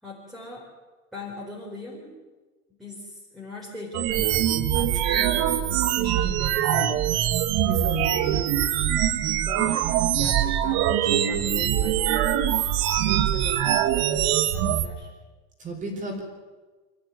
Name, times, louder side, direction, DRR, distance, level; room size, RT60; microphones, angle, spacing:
voice 1, 0.0-0.7 1.1-2.2 2.8-7.1 7.6-8.5 9.5-15.1, left 2 dB, ahead, -6 dB, 4.7 m, -41 dB
sound 1, 3.9-14.9, right 11 dB, 55° right, 1.9 m, -23 dB
voice 2, 7.7-8.2 15.6-16.2, right 1 dB, 20° right, 2 dB, 4.5 m, -31 dB
25.5 x 14.5 x 9.6 m, 1.3 s
supercardioid pair, 150°, 34 cm